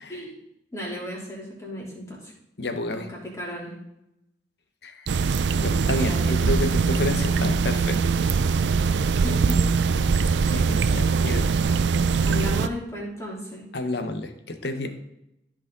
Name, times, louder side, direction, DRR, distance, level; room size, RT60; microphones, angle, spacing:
voice 1, 0.7-2.3 2.9-3.7 6.0-6.3 9.2-9.6 12.2-13.6, left 1 dB, 15° left, -5 dB, 3.2 m, -34 dB
voice 2, 2.6-3.1 4.8-5.1 5.6-8.0 10.4-11.5 13.7-14.9, left 2 dB, 70° left, 7 dB, 1.0 m, -30 dB
sound 1, 5.1-12.7, right 5 dB, 85° right, 0.4 m, -22 dB
14.5 x 5.0 x 3.9 m, 0.84 s
head